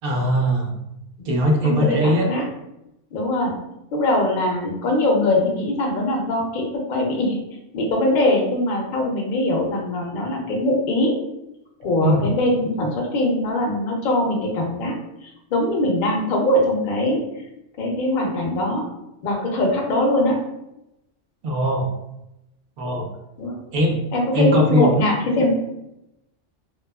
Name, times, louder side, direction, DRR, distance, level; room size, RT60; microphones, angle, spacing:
voice 1, 0.0-0.7 1.3-2.3 12.0-12.2 21.4-21.9 22.8-23.1 23.7-24.0 24.3-24.9, equal, 60° right, 1 dB, 0.6 m, -20 dB
voice 2, 1.6-2.4 3.1-3.5 3.9-7.4 7.7-11.1 11.8-15.0 15.2-17.2 17.8-18.9 19.2-20.4 23.4-23.6 24.1-25.5, left 1 dB, 60° left, 0 dB, 0.5 m, -22 dB
2.7 x 2.3 x 2.2 m, 0.88 s
omnidirectional pair, 1.3 m